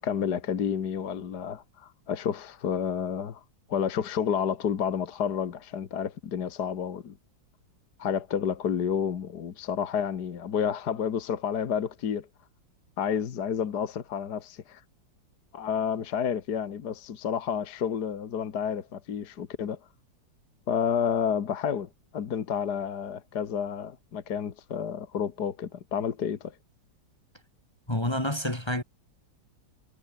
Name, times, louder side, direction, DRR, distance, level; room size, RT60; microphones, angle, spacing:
voice 1, 0.0-3.4 3.7-7.2 8.0-12.3 13.0-14.8 15.5-19.8 20.7-26.5, left 7 dB, 60° left, 2.0 m, -30 dB
voice 2, 27.9-28.8, left 1 dB, 15° left, 1.9 m, -28 dB
omnidirectional pair, 2.0 m